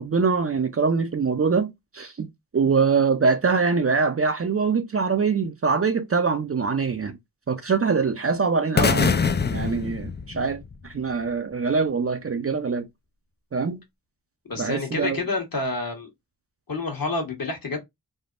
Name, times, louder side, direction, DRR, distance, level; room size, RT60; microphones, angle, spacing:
voice 1, 0.0-2.3 2.5-7.2 7.5-9.2 9.5-12.9 13.5-13.8 14.6-15.2, right 5 dB, 35° right, 0.5 m, -23 dB
sound 1, 8.8-10.9, left 6 dB, 25° left, 0.3 m, -23 dB
voice 2, 14.5-16.1 16.7-17.8, left 3 dB, 55° left, 1.2 m, -28 dB
3.4 x 2.0 x 2.4 m
cardioid pair, 45°, 43 cm